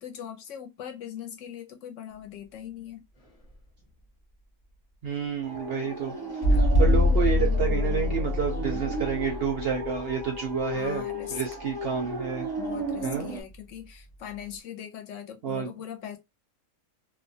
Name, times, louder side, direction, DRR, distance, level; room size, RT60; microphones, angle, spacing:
voice 1, 0.0-3.0 6.5-6.9 10.7-11.4 12.6-16.2, left 9 dB, 70° left, 0.9 m, -40 dB
voice 2, 5.0-6.2 6.5-11.0 11.3-12.5 13.0-13.3 15.4-15.7, right 7 dB, 65° right, 0.6 m, -29 dB
sound 1, 5.4-13.4, right 1 dB, 25° right, 0.5 m, -35 dB
sound 2, 6.4-11.0 12.8-12.9, left 2 dB, 35° left, 0.6 m, -24 dB
2.5 x 2.1 x 2.6 m
omnidirectional pair, 1.4 m